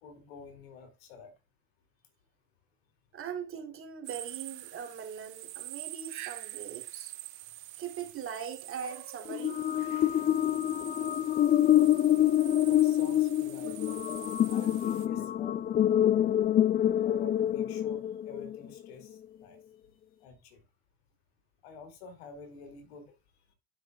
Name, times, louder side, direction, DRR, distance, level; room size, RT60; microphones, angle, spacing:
voice 1, 0.0-1.3 12.6-13.8 14.0-16.1 17.0-19.6 20.2-20.6 21.6-23.2, left 4 dB, 85° left, 2.5 m, -48 dB
voice 2, 3.1-7.1 7.8-10.2 13.6-14.0 15.2-15.3, right 7 dB, 45° right, 3.0 m, -41 dB
sound 1, 4.0-15.1, right 17 dB, 70° right, 1.0 m, -46 dB
sound 2, 9.3-18.7, left 11 dB, 30° left, 0.4 m, -26 dB
11.5 x 6.0 x 2.3 m
hypercardioid pair, 75°, 31 cm